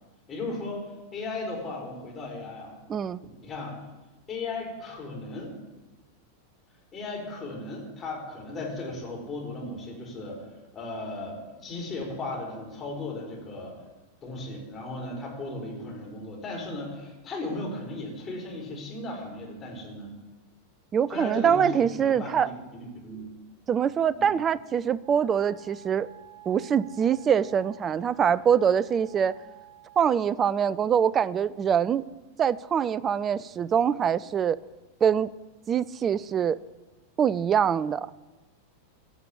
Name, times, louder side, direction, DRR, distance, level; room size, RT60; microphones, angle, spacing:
voice 1, 0.3-2.8 3.4-3.8 4.3-5.5 6.9-10.5 10.7-13.7 14.2-20.1 21.1-23.3 24.1-24.3, left 2 dB, 20° left, -2 dB, 4.3 m, -36 dB
voice 2, 2.9-3.2 20.9-22.5 23.7-26.1 26.5-29.4 30.0-32.0 32.4-34.6 35.0-35.3 35.7-36.6 37.2-38.1, right 8 dB, 25° right, 19 dB, 0.4 m, -24 dB
Wind instrument woodwind instrument, 25.0-30.2, right 9 dB, 50° right, 5.0 m, -51 dB
16.0 x 5.9 x 8.4 m, 1.1 s
figure-of-eight pair, 90°, 0 cm